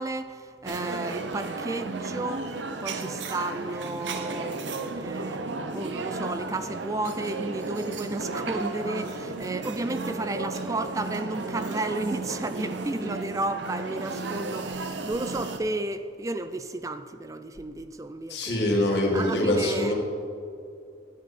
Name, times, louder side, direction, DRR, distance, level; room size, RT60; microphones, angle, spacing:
voice 1, 0.0-4.6 4.9-18.7 19.1-19.9, right 2 dB, 20° right, 10 dB, 0.3 m, -33 dB
sound 1, 0.6-15.6, right 3 dB, 85° right, 0.8 m, -34 dB
voice 2, 18.3-19.9, left 1 dB, 75° left, -2 dB, 2.1 m, -24 dB
10.5 x 9.0 x 4.2 m, 2.5 s
head